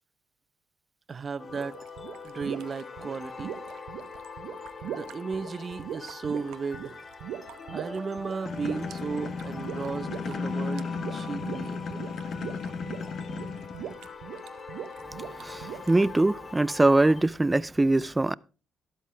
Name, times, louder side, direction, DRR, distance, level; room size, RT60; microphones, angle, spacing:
voice 1, 1.1-1.8 2.2-3.5 4.8-7.0 7.7-12.0, right 5 dB, 40° right, 1.0 m, -35 dB
sound 1, 1.4-17.2, left 4 dB, 40° left, 1.7 m, -43 dB
sound 2, 1.5-16.1, right 10 dB, 85° right, 0.8 m, -41 dB
sound 3, 8.4-14.1, left 5 dB, 60° left, 1.1 m, -35 dB
voice 2, 15.4-18.3, right 2 dB, 15° right, 0.4 m, -23 dB
12.5 x 11.5 x 3.4 m
cardioid pair, 90°, 0 cm